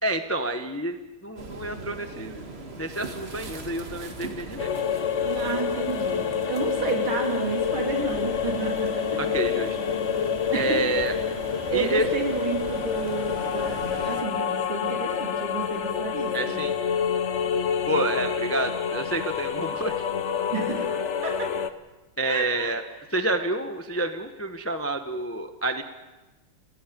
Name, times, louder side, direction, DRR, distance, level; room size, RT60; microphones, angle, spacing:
voice 1, 0.0-2.5 2.8-4.7 9.2-9.8 10.5-11.2 11.7-12.1 16.3-16.7 17.9-20.1 22.2-22.8 23.1-25.8, right 1 dB, 20° left, 7 dB, 0.4 m, -28 dB
sound 1, 1.4-14.2, right 2 dB, 30° right, 1.9 m, -39 dB
sound 2, 4.6-21.7, left 7 dB, 70° left, 0.6 m, -28 dB
voice 2, 5.2-9.2 10.5-10.8 11.7-16.6 20.5-20.9 21.2-21.5 22.3-22.7, right 5 dB, 70° right, 1 dB, 4.2 m, -31 dB
30.0 x 18.0 x 5.3 m, 1.1 s
omnidirectional pair, 2.4 m